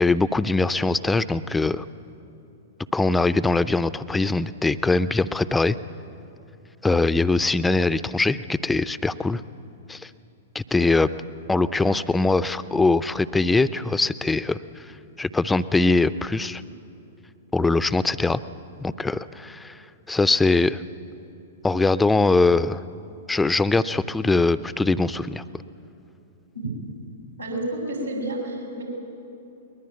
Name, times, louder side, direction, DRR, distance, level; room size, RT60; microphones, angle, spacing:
voice 1, 0.0-1.8 2.9-5.8 6.8-9.4 9.9-10.1 10.5-11.1 11.5-14.6 15.2-16.6 17.5-18.4 18.8-19.8 20.1-20.8 21.6-22.8 23.3-25.4, left 3 dB, 5° left, 15 dB, 0.6 m, -22 dB
voice 2, 27.4-28.8, right 1 dB, 80° right, 0 dB, 6.9 m, -30 dB
22.0 x 20.5 x 9.5 m, 2.8 s
figure-of-eight pair, 105°, 0 cm